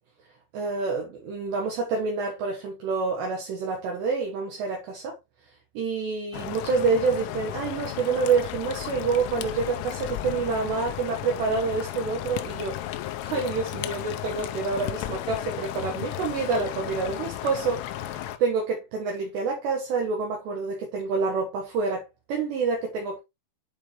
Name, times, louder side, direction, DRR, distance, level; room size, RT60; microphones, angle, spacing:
voice 1, 0.5-5.2 5.8-12.9 13.2-22.0 22.3-23.2, right 4 dB, 70° right, 3.1 m, -27 dB
sound 1, 6.3-18.4, left 13 dB, 85° left, 3.1 m, -34 dB
9.1 x 4.6 x 3.1 m
omnidirectional pair, 5.8 m